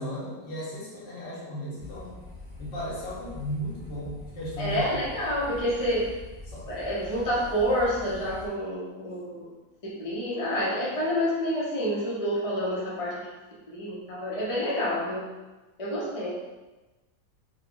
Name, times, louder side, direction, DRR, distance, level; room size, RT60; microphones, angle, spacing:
voice 1, 0.0-2.2 2.6-5.1 6.5-6.7, equal, 75° left, -6 dB, 1.8 m, -35 dB
sound 1, 1.8-8.5, left 2 dB, 15° right, 1.2 m, -44 dB
voice 2, 4.6-6.2 6.7-9.5 9.8-13.2 13.7-15.2 15.8-16.3, equal, 25° left, -6 dB, 0.8 m, -28 dB
4.5 x 2.4 x 3.8 m, 1.1 s
omnidirectional pair, 1.9 m